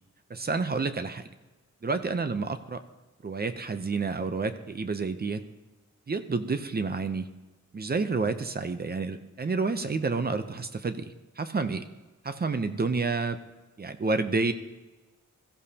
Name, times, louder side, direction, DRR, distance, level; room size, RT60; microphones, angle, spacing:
voice 1, 0.3-1.2 1.8-2.8 3.2-5.4 6.1-7.3 7.7-11.8 12.2-13.4 13.8-14.5, right 4 dB, 30° right, 9 dB, 0.6 m, -29 dB
22.0 x 14.0 x 2.9 m, 1.2 s
wide cardioid pair, 180°, 30 cm